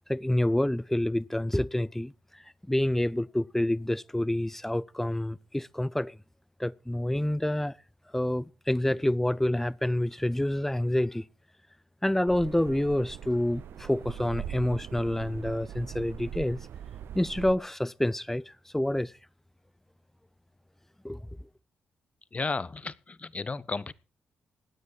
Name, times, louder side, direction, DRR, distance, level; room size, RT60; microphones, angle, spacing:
voice 1, 0.1-2.4 2.7-6.2 6.6-7.7 8.1-11.2 12.0-16.6 17.1-19.1 21.0-21.2, left 1 dB, 5° left, 0.6 m, -28 dB
sound 1, 12.3-17.6, right 10 dB, 70° right, 0.7 m, -41 dB
voice 2, 22.3-23.9, left 3 dB, 35° left, 1.0 m, -33 dB
16.5 x 9.7 x 4.7 m
hypercardioid pair, 45°, 4 cm